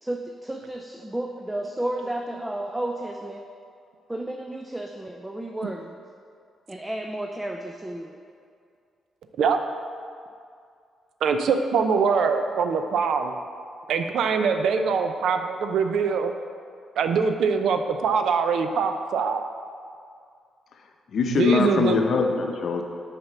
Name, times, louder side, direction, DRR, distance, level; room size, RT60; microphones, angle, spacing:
voice 1, 0.0-3.4 4.1-6.0 6.7-8.2, right 1 dB, 10° right, 2 dB, 0.4 m, -32 dB
voice 2, 11.2-13.3 13.9-16.3 17.0-19.4 21.3-22.0, right 5 dB, 75° right, 7 dB, 0.5 m, -23 dB
voice 3, 21.1-22.8, left 4 dB, 60° left, 4 dB, 0.7 m, -22 dB
6.3 x 4.3 x 6.0 m, 2.3 s
cardioid pair, 100°, 0 cm